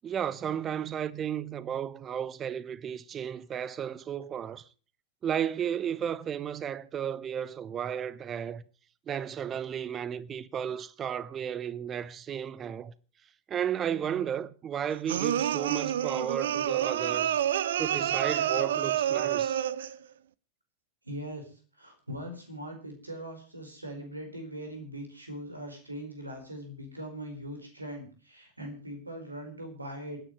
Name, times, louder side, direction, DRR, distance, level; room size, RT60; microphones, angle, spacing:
voice 1, 0.0-4.7 5.2-8.6 9.1-12.9 13.5-17.4 17.8-19.6, right 9 dB, 25° right, 0.9 m, -33 dB
sound 1, 15.1-20.0, right 10 dB, 60° right, 0.6 m, -28 dB
voice 2, 21.0-30.2, equal, 85° right, 4.6 m, -41 dB
27.5 x 10.0 x 3.2 m
figure-of-eight pair, 90°, 0 cm